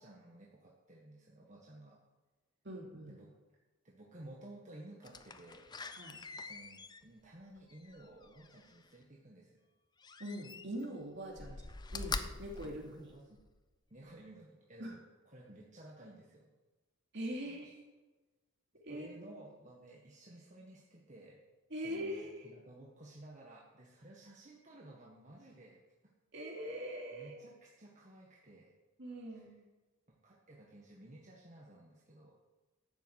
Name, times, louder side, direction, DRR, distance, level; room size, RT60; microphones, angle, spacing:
voice 1, 0.0-2.0 3.1-3.4 3.8-5.7 6.1-9.6 11.4-11.6 12.6-13.4 13.9-15.0 15.2-16.5 17.4-17.7 18.9-21.4 21.8-25.8 27.1-28.7 29.3-29.5 30.1-32.3, right 1 dB, 35° right, -3 dB, 1.6 m, -55 dB
voice 2, 2.6-3.1 5.9-6.2 10.2-11.6 11.9-13.1 14.8-14.9 17.1-17.7 18.7-19.1 21.7-22.3 26.3-27.3 29.0-29.7, equal, 60° right, -1 dB, 3.0 m, -42 dB
Slam, 5.0-8.9 10.0-10.9 11.3-13.6 14.1-14.2, left 4 dB, 20° left, 0.5 m, -45 dB
12.0 x 7.1 x 8.1 m, 1.2 s
head